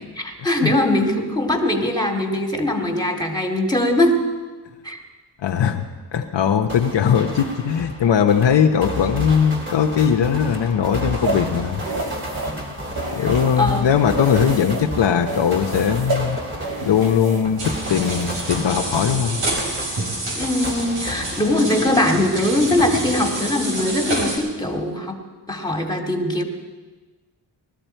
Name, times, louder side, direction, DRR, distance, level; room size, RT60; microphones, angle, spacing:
voice 1, 0.2-4.2 4.8-5.0 13.2-13.9 20.3-25.2 25.5-26.4, left 1 dB, 10° left, 2 dB, 2.5 m, -21 dB
voice 2, 5.4-5.8 6.1-11.8 13.1-16.4 16.8-19.4, left 7 dB, 65° left, 3 dB, 1.0 m, -19 dB
sound 1, 6.7-22.4 22.8-24.1, equal, 25° right, 3.5 m, -33 dB
sound 2, 11.2-13.8 14.1-14.9 15.2-18.7, right 2 dB, 50° right, 2.6 m, -30 dB
sound 3, 17.6-24.4, right 1 dB, 70° right, 5.0 m, -28 dB
20.0 x 13.0 x 4.5 m, 1.3 s
cardioid pair, 60°, 46 cm